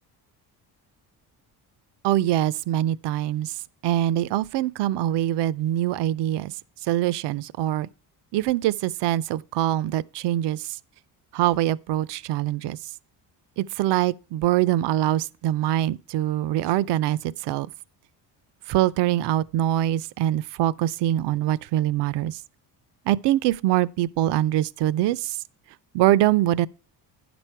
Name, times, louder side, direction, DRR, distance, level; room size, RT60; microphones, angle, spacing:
voice 1, 2.0-3.6 3.8-6.5 6.9-7.9 8.3-10.8 11.3-12.8 13.6-17.7 18.7-22.4 23.1-25.4 25.9-26.7, right 13 dB, 75° right, 0.5 m, -23 dB
9.7 x 6.1 x 4.5 m
cardioid pair, 140°, 41 cm